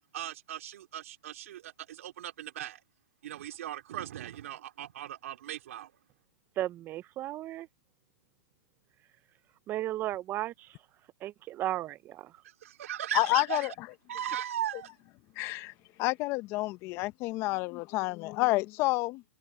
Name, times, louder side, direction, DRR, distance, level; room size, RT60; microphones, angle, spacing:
voice 1, 0.1-2.8 3.2-5.9 12.6-13.7 14.1-14.9, right 11 dB, 65° right, 2.7 m, -38 dB
voice 2, 6.6-7.7 9.7-10.7 11.2-12.3, right 14 dB, 25° right, 0.7 m, -34 dB
voice 3, 13.1-13.9 15.4-15.7 16.0-19.2, left 21 dB, 35° left, 1.1 m, -29 dB
hypercardioid pair, 135°, 8 cm